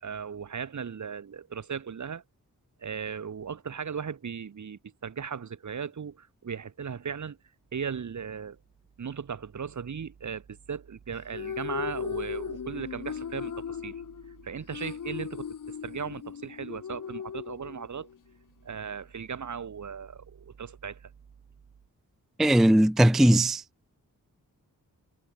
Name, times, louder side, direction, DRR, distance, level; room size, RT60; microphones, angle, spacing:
voice 1, 0.0-2.2 2.8-7.4 7.7-8.6 9.0-13.9 14.4-18.1 18.6-21.1, right 6 dB, 60° right, 1.5 m, -37 dB
sound 1, 11.1-18.2, left 7 dB, 70° left, 1.4 m, -37 dB
voice 2, 22.4-23.6, right 1 dB, ahead, 0.4 m, -19 dB
wide cardioid pair, 125°, 33 cm